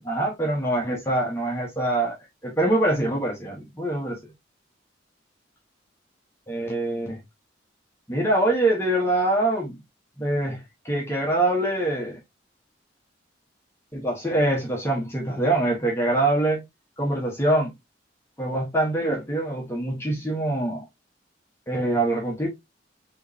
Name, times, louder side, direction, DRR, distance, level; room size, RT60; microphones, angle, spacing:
voice 1, 0.0-2.2 2.4-4.2 6.5-7.2 8.1-9.8 10.2-12.1 13.9-16.6 17.0-17.7 18.4-20.8 21.7-22.5, right 1 dB, 15° left, 1.3 m, -24 dB
4.7 x 3.2 x 2.8 m
head